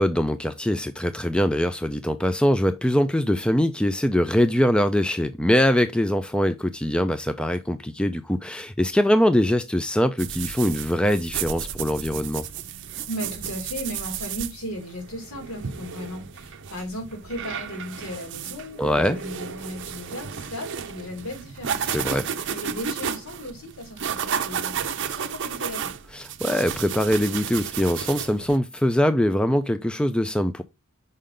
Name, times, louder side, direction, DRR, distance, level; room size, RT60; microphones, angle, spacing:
voice 1, 0.0-12.5 18.8-19.2 21.9-22.3 26.1-30.6, equal, 5° left, 0.3 m, -22 dB
sound 1, 10.2-28.6, right 7 dB, 55° right, 0.6 m, -33 dB
voice 2, 13.1-21.9 22.3-25.9, equal, 70° left, 2.5 m, -36 dB
5.5 x 5.1 x 3.7 m
head